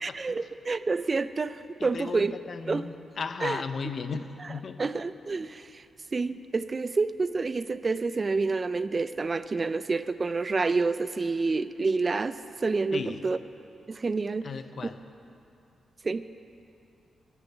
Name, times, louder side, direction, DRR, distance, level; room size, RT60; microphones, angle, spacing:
voice 1, 0.0-2.4 2.7-2.9 3.4-3.6 4.4-4.5 4.8-5.9 6.1-13.4 13.9-14.5 14.8-14.9 16.0-16.2, right 4 dB, 35° right, 14 dB, 0.3 m, -28 dB
voice 2, 1.8-4.8 12.9-13.2 14.4-15.0, left 5 dB, 55° left, 10 dB, 0.5 m, -35 dB
10.0 x 6.8 x 8.9 m, 2.6 s
cardioid pair, 105°, 0 cm